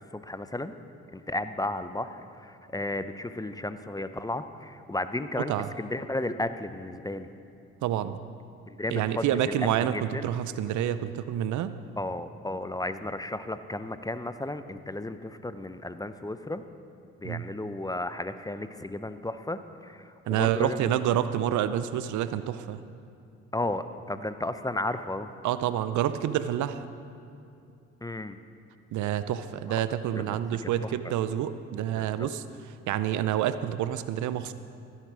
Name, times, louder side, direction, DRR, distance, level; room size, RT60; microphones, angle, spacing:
voice 1, 0.1-0.7 1.1-7.3 8.7-9.3 9.9-10.3 12.0-16.6 17.2-20.8 23.5-25.3 28.0-28.4 30.2-30.3 31.9-32.3, left 1 dB, 10° left, 11 dB, 0.7 m, -34 dB
voice 2, 7.8-8.2 8.9-11.7 17.2-17.5 20.3-22.8 25.4-26.8 28.9-34.5, right 11 dB, 75° right, 12 dB, 0.6 m, -28 dB
14.5 x 8.3 x 6.2 m, 2.5 s
supercardioid pair, 50°, 30 cm